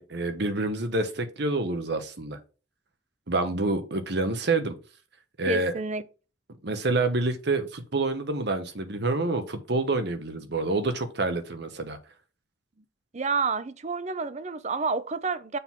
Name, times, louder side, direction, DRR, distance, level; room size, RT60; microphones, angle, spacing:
voice 1, 0.0-2.4 3.3-4.7 5.4-5.7 6.6-12.0, right 2 dB, 55° right, 1.1 m, -27 dB
voice 2, 5.5-6.0 13.1-15.6, right 4 dB, 35° right, 0.5 m, -29 dB
6.8 x 3.8 x 6.0 m
head